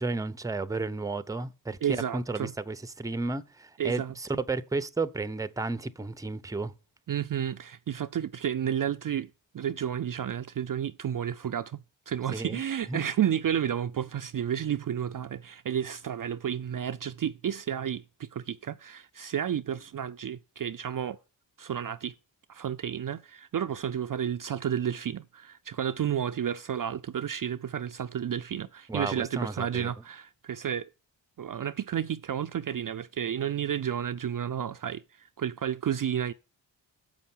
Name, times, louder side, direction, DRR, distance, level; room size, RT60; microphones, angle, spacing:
voice 1, 0.0-1.8 2.1-6.7 12.3-12.6 12.9-13.0 28.9-29.9, right 3 dB, 10° right, 0.6 m, -32 dB
voice 2, 1.8-2.5 3.8-4.1 7.1-9.3 9.5-21.2 21.6-22.1 22.5-30.9 31.4-35.0 35.4-36.3, right 9 dB, 45° right, 0.5 m, -31 dB
7.2 x 5.7 x 5.5 m
cardioid pair, 45°, 45 cm